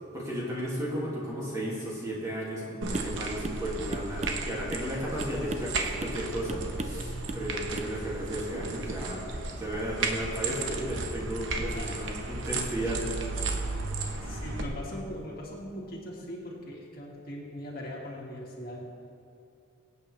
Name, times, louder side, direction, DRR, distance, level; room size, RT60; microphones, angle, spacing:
voice 1, 0.1-9.3 9.6-13.1, equal, 15° right, -5 dB, 2.3 m, -34 dB
sound 1, 2.8-14.6, right 3 dB, 70° right, 1.1 m, -34 dB
sound 2, 2.9-3.2 3.4-3.6 3.9-4.9 5.2-5.7 6.0-6.2 6.5-7.0 7.3-7.5 7.8-7.9, right 2 dB, 35° right, 0.6 m, -37 dB
voice 2, 11.5-11.9 14.2-18.9, left 1 dB, 45° left, -3 dB, 2.1 m, -40 dB
23.0 x 8.5 x 3.3 m, 2.7 s
head